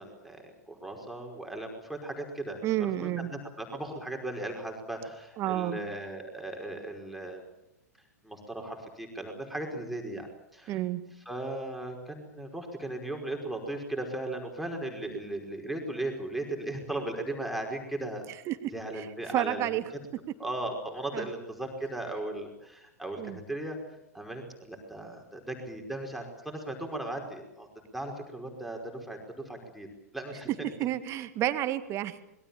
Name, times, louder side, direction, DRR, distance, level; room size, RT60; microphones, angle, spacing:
voice 1, 0.0-3.3 3.6-7.4 8.2-10.3 10.5-10.8 11.2-18.3 18.7-19.7 20.4-23.8 24.1-27.7 27.9-29.2 29.4-29.9 30.1-30.5, right 1 dB, ahead, 1 dB, 5.1 m, -37 dB
voice 2, 2.6-3.3 5.4-5.8 10.7-11.0 18.5-18.6 19.0-19.8 21.1-21.3 23.2-23.4 30.8-32.2, right 13 dB, 30° right, 11 dB, 1.8 m, -30 dB
26.5 x 22.0 x 7.2 m, 0.86 s
figure-of-eight pair, 100°, 9 cm